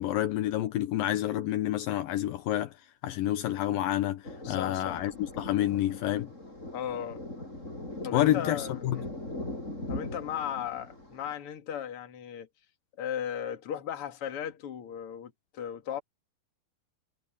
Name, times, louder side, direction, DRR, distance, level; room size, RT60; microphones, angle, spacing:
voice 1, 0.0-2.7 3.0-6.3 8.1-9.0, left 13 dB, 75° left, 2.6 m, -29 dB
Thunder, 4.2-11.3, left 1 dB, 20° left, 7.7 m, -40 dB
voice 2, 4.4-5.0 6.7-7.2 8.0-9.1 9.9-12.5 13.0-16.0, left 9 dB, 45° left, 2.5 m, -36 dB
omnidirectional pair, 4.2 m